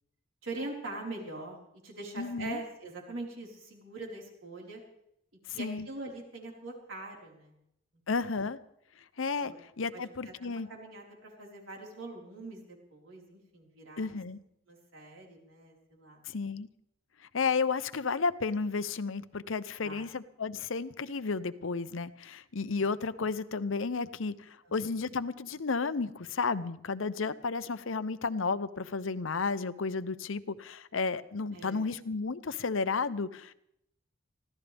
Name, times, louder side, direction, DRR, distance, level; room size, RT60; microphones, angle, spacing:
voice 1, 0.4-1.6 1.8-4.8 5.5-7.6 8.1-8.2 9.4-9.6 9.9-14.2 14.7-16.2 19.8-20.1 24.6-24.8 31.5-31.9, right 2 dB, 85° right, -1 dB, 4.6 m, -43 dB
voice 2, 2.2-2.6 5.5-5.9 8.1-8.6 9.2-10.7 14.0-14.4 16.3-16.7 17.3-33.5, left 4 dB, 90° left, 14 dB, 0.8 m, -32 dB
24.0 x 15.5 x 3.5 m, 0.77 s
head